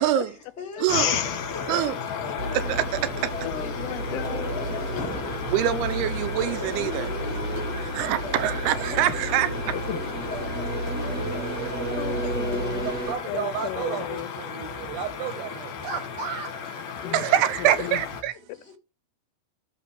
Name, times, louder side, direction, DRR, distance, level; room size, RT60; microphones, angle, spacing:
voice 1, 0.2-0.9 1.5-1.8 2.1-4.4 4.9-5.1 6.8-8.4 8.9-9.1 10.3-12.6 13.5-14.1 17.0-17.8 18.5-18.7, left 5 dB, 25° left, 1.6 m, -40 dB
sound 1, 0.9-18.2, left 6 dB, 60° left, 2.7 m, -34 dB
sound 2, 2.4-13.1, right 1 dB, 40° right, 1.4 m, -32 dB
voice 2, 3.4-4.8 5.7-6.0 9.7-10.0 12.0-12.9 13.3-14.3 17.0-17.3 17.6-18.0, left 16 dB, 85° left, 2.7 m, -35 dB
voice 3, 5.5-7.1 8.0-9.5 17.1-18.3, right 12 dB, 80° right, 2.8 m, -24 dB
voice 4, 12.8-16.5, right 7 dB, 65° right, 2.3 m, -33 dB
19.0 x 6.7 x 3.2 m
omnidirectional pair, 4.7 m